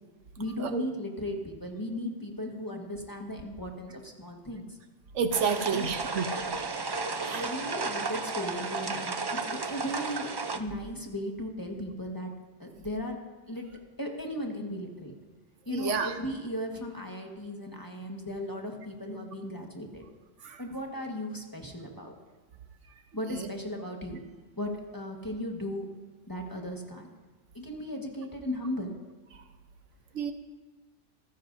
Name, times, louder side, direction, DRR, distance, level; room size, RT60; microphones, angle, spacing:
voice 1, 0.4-4.8 5.4-6.0 7.2-12.3 12.6-13.2 13.5-15.1 15.6-20.1 20.6-22.1 23.1-24.2 24.6-25.9 26.3-27.1 27.5-28.9, left 1 dB, 15° left, 1 dB, 1.4 m, -36 dB
voice 2, 5.1-6.3 7.2-7.5 15.7-16.1 20.4-20.6 23.4-23.5 30.1-30.3, right 6 dB, 70° right, 7 dB, 1.1 m, -29 dB
sound 1, 5.3-10.6, right 3 dB, 40° right, 0.3 m, -33 dB
26.5 x 10.0 x 2.7 m, 1.2 s
omnidirectional pair, 1.3 m